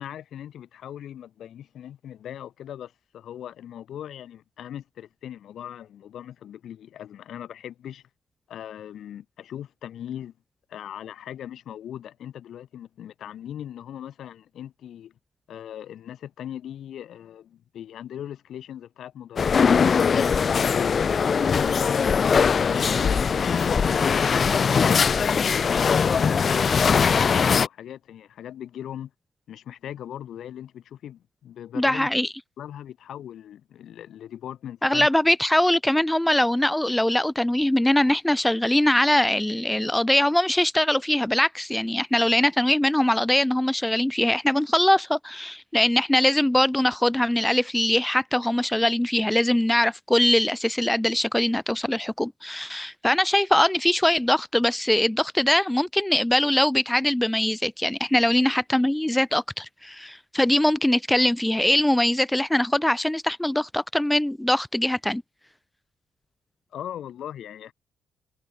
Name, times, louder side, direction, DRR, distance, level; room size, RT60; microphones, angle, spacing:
voice 1, 0.0-8.0 8.5-10.3 10.7-15.1 15.5-22.2 22.5-29.1 29.5-32.1 32.6-35.1 66.7-67.7, left 10 dB, 70° left, 5.5 m, -39 dB
sound 1, 19.4-27.7, left 6 dB, 45° left, 0.5 m, -21 dB
voice 2, 31.8-32.3 34.8-65.2, left 1 dB, 5° left, 1.0 m, -22 dB
cardioid pair, 90°, 0 cm